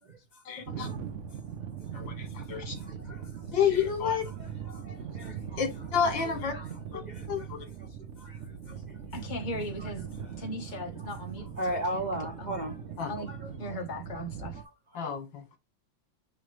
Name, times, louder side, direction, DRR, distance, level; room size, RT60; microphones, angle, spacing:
voice 1, 0.5-0.9 1.9-2.8 3.5-4.2 5.6-6.5 6.9-7.0 7.3-7.6 13.0-13.1 14.9-15.4, left 7 dB, 70° left, 2.2 m, -29 dB
sound 1, 0.6-14.6, right 7 dB, 55° right, 0.9 m, -40 dB
voice 2, 2.5-3.4 4.7-5.6 6.5-6.7 7.1-7.3 8.2-8.4 8.7-9.0 11.6-12.8 13.3-13.4 14.1-14.2 14.6-14.7, right 1 dB, 85° right, 0.4 m, -37 dB
voice 3, 9.1-10.1 10.4-11.5 11.7-12.5 13.1-13.3 13.6-14.6, equal, 30° left, 1.2 m, -38 dB
8.9 x 3.3 x 3.2 m
omnidirectional pair, 2.1 m